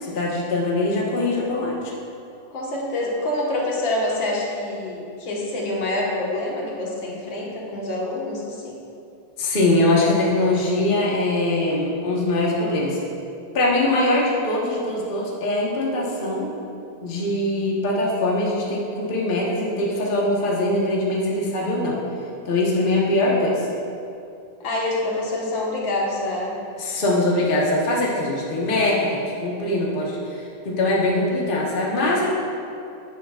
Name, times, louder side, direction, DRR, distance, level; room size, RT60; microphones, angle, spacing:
voice 1, 0.0-1.8 9.4-13.0 13.5-16.5 17.0-22.0 22.4-23.6 26.8-30.2 30.6-32.3, left 2 dB, 30° left, -4 dB, 1.2 m, -22 dB
voice 2, 2.5-8.8 24.6-26.5 28.0-28.2 28.5-29.1, left 1 dB, 75° left, -4 dB, 2.2 m, -26 dB
11.5 x 9.2 x 2.4 m, 2.5 s
omnidirectional pair, 2.1 m